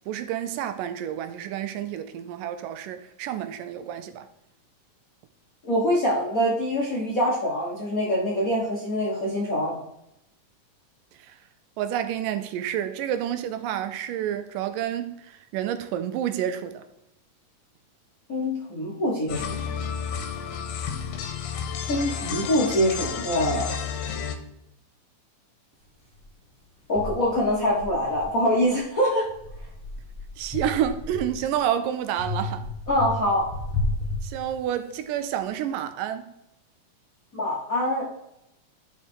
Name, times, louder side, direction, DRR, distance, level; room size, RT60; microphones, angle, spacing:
voice 1, 0.1-4.3 11.2-11.4 11.8-16.8 30.4-32.6 34.2-36.3, right 10 dB, 80° right, 2.1 m, -29 dB
voice 2, 5.6-9.7 18.3-19.5 21.9-23.7 26.9-29.3 32.9-33.5 37.3-38.1, equal, 75° left, 0.7 m, -24 dB
sound 1, 19.3-24.4, left 7 dB, 90° left, 2.6 m, -31 dB
sound 2, 26.1-26.2 26.9-28.8 29.2-31.6 32.2-34.9, left 2 dB, 5° left, 0.6 m, -33 dB
11.0 x 4.4 x 4.4 m
omnidirectional pair, 3.9 m